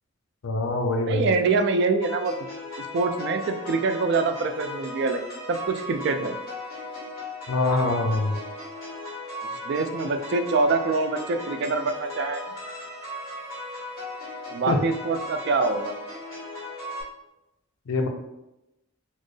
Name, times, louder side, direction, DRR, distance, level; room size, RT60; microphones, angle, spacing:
voice 1, 0.4-1.3 7.5-8.4 14.7-14.8 17.9-18.1, left 2 dB, 75° left, 4 dB, 0.5 m, -24 dB
voice 2, 1.0-2.3 2.9-5.2 5.5-6.4 9.7-12.4 14.5-15.9, right 3 dB, 55° right, 7 dB, 0.3 m, -25 dB
sound 1, 2.0-17.0, left 1 dB, 45° left, 1.3 m, -37 dB
4.2 x 2.0 x 3.1 m, 0.92 s
head